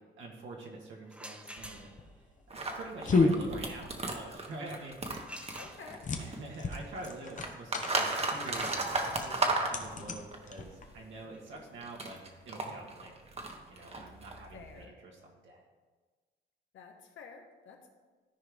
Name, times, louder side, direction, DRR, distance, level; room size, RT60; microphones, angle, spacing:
voice 1, 0.2-1.9 2.7-5.3 6.2-12.2 12.5-13.2 13.7-15.6, right 2 dB, 75° right, -2 dB, 1.7 m, -46 dB
sound 1, 1.1-2.2 5.3-6.3 8.1-13.8, equal, 5° right, 0.9 m, -50 dB
sound 2, 1.6-11.1, left 3 dB, 40° left, 1.0 m, -34 dB
sound 3, 2.5-6.5 6.7-10.4 11.5-14.8, right 3 dB, 30° right, 1.2 m, -35 dB
voice 2, 5.5-6.0 14.5-14.9 16.7-17.9, left 5 dB, 75° left, 3 dB, 1.3 m, -50 dB
13.5 x 4.7 x 3.5 m, 1.4 s
cardioid pair, 90°, 20 cm